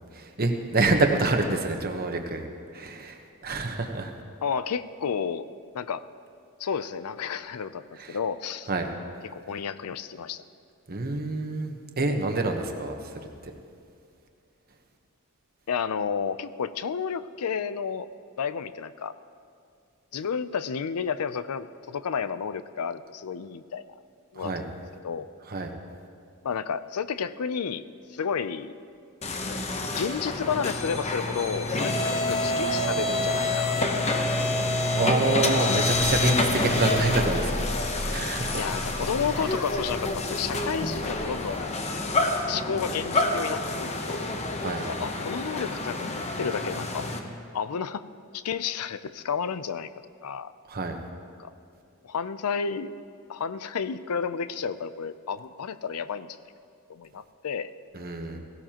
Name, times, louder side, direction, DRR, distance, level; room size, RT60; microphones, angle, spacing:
voice 1, 0.0-2.4 2.7-4.1 8.0-8.1 8.7-8.9 10.9-12.9 24.4-24.6 25.5-25.7 34.9-37.5 38.1-38.6 44.6-44.8 50.7-51.0 57.9-58.4, right 3 dB, 45° right, 4 dB, 1.1 m, -27 dB
voice 2, 4.4-5.5 5.7-6.0 6.6-8.7 9.2-10.4 15.7-18.1 18.4-19.2 20.1-24.0 24.3-24.7 25.0-25.3 26.4-27.8 28.1-28.8 29.5-29.6 30.0-33.9 35.5-35.6 38.6-41.6 42.5-44.3 44.9-47.1 47.5-48.1 48.3-49.9 50.2-50.5 51.4-51.5 52.0-53.0 53.3-56.4 56.9-57.7, left 6 dB, 85° left, 14 dB, 0.5 m, -31 dB
sound 1, 29.2-47.2, left 2 dB, 30° left, 0.8 m, -27 dB
17.0 x 16.5 x 2.9 m, 2.3 s
head